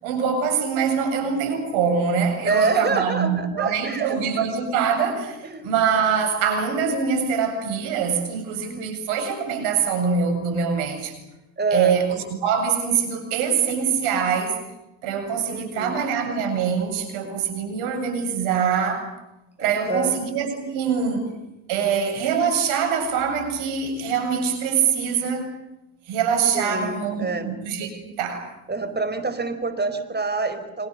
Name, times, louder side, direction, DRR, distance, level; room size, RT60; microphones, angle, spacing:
voice 1, 0.0-11.1 11.7-14.6 15.0-19.1 19.6-21.2 21.7-25.5 26.1-27.9 28.1-28.5, right 6 dB, 80° right, 7 dB, 7.9 m, -24 dB
voice 2, 2.4-4.5 5.4-5.7 8.6-9.0 11.6-12.0 15.5-16.0 19.6-20.2 26.5-27.5 28.7-30.9, right 3 dB, 20° right, 10 dB, 4.8 m, -27 dB
29.0 x 26.0 x 6.8 m, 0.95 s
supercardioid pair, 70°, 48 cm